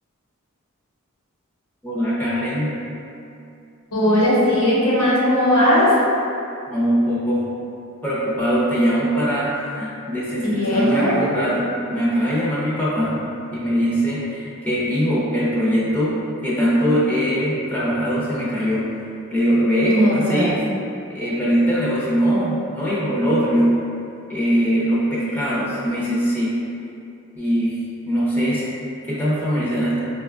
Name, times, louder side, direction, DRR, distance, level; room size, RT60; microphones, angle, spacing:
voice 1, 1.8-2.7 6.7-7.4 8.0-13.2 13.5-18.9 19.3-20.6 21.1-23.8 24.3-26.6 27.4-27.8 28.1-28.6 29.1-29.9, equal, 10° left, -9 dB, 0.6 m, -21 dB
voice 2, 3.9-5.9 10.4-11.2 19.8-20.5, equal, 80° left, -7 dB, 0.9 m, -18 dB
4.9 x 2.2 x 2.4 m, 2.6 s
head